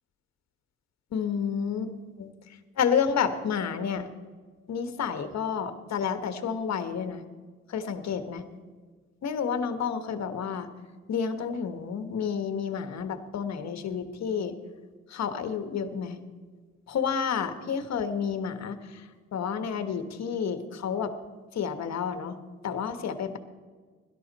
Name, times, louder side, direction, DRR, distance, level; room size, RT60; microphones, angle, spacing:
voice 1, 1.1-2.3 2.8-4.0 4.7-7.2 7.7-8.4 9.2-10.7 11.1-14.5 15.1-16.2 16.9-21.1 21.5-22.4 22.6-23.4, left 7 dB, 60° left, 9 dB, 1.3 m, -30 dB
17.0 x 12.5 x 4.1 m, 1.5 s
cardioid pair, 90°, 30 cm